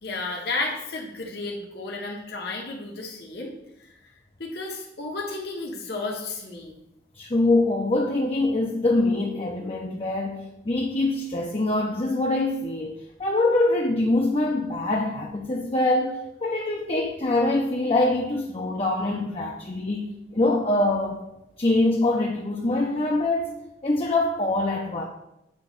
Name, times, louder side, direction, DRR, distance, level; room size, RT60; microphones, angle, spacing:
voice 1, 0.0-3.5 3.8-4.1 4.4-6.8, left 3 dB, 65° left, -2 dB, 1.3 m, -33 dB
voice 2, 7.1-21.2 21.6-25.0, left 2 dB, 35° left, 0 dB, 0.7 m, -24 dB
8.4 x 3.1 x 6.4 m, 0.87 s
head